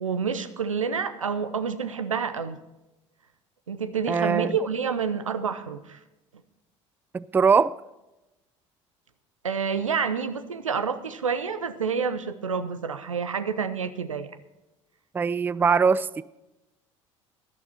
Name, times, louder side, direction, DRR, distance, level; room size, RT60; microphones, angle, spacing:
voice 1, 0.0-2.6 3.7-6.0 9.4-14.4, right 6 dB, 85° right, 0.7 m, -28 dB
voice 2, 4.1-4.6 7.1-7.8 15.1-16.2, right 5 dB, 10° right, 0.3 m, -22 dB
13.0 x 12.0 x 4.3 m
figure-of-eight pair, 65°, 16 cm